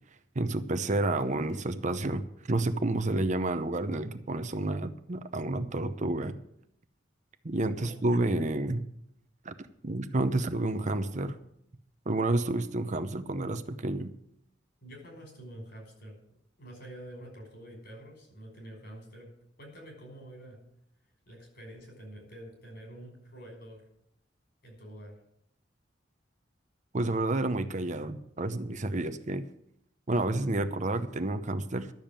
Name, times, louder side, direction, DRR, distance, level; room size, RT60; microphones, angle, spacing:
voice 1, 0.4-6.4 7.4-8.9 9.4-9.5 9.8-11.4 12.1-14.1 26.9-29.4 30.1-31.9, right 2 dB, 40° right, 10 dB, 0.8 m, -30 dB
voice 2, 14.8-16.2 16.6-19.3 19.6-20.6 21.3-23.8 24.6-25.2, right 1 dB, 60° left, 1 dB, 5.5 m, -47 dB
12.0 x 7.2 x 8.8 m, 0.72 s
head